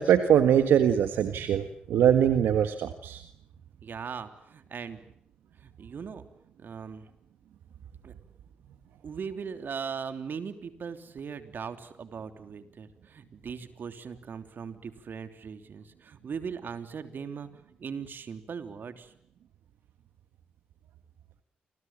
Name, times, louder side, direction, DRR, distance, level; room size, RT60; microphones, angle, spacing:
voice 1, 0.0-3.2, right 9 dB, 85° right, 8 dB, 1.6 m, -22 dB
voice 2, 3.8-5.1 5.6-6.2 6.6-7.1 8.0-8.1 9.0-17.5 17.8-19.1, right 6 dB, 65° right, 9 dB, 3.3 m, -39 dB
29.0 x 26.5 x 7.5 m, 0.72 s
supercardioid pair, 45°, 4 cm